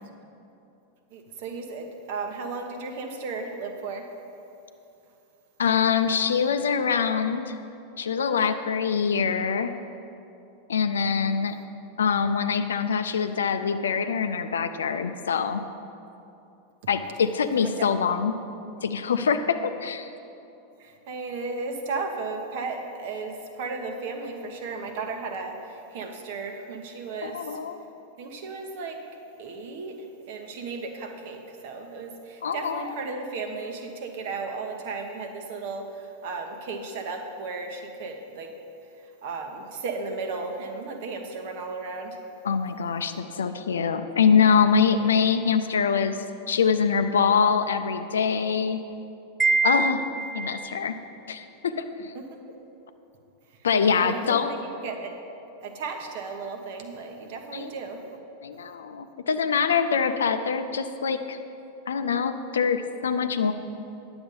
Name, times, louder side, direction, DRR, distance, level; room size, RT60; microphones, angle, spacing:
voice 1, 1.1-4.1 17.5-17.9 20.8-27.6 28.2-29.0 29.4-30.0 30.3-38.5 39.0-42.2 52.1-52.3 53.9-55.1 55.6-58.0, right 4 dB, 50° right, 4 dB, 1.1 m, -35 dB
voice 2, 5.6-7.6 8.0-9.7 10.7-11.6 12.0-15.6 16.9-18.4 18.8-20.1 27.2-27.8 32.4-32.9 42.4-48.8 49.6-50.0 50.3-51.0 51.3-52.1 53.6-54.5 57.5-57.7 58.4-61.4 61.9-63.5, left 6 dB, 65° left, 9 dB, 0.5 m, -24 dB
Wind chime, 49.4-50.8, right 3 dB, 10° right, 0.4 m, -25 dB
10.0 x 7.0 x 5.4 m, 2.8 s
figure-of-eight pair, 90°, 0 cm